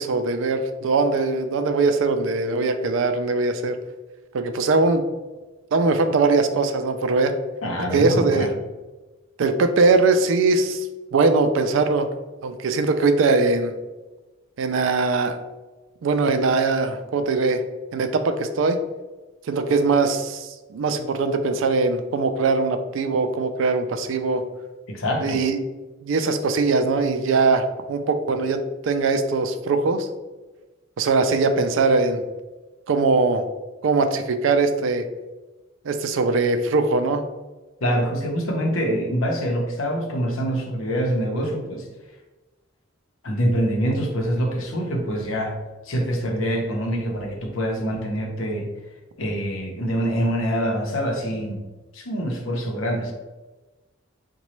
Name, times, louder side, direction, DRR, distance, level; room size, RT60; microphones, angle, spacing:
voice 1, 0.0-3.8 4.3-5.0 5.7-7.3 7.9-8.5 9.4-10.9 11.1-12.1 12.4-13.7 14.6-15.4 16.0-17.6 17.9-18.8 19.5-24.4 25.2-25.6 26.0-30.1 31.0-32.2 32.9-33.5 33.8-35.0 35.8-37.2, right 3 dB, 70° right, 8 dB, 0.3 m, -21 dB
voice 2, 7.6-8.5 24.9-25.4 37.8-41.9 43.2-45.6 45.8-48.7 49.2-51.6 51.9-53.1, equal, 90° left, 2 dB, 0.7 m, -25 dB
3.9 x 2.2 x 3.0 m, 1.2 s
head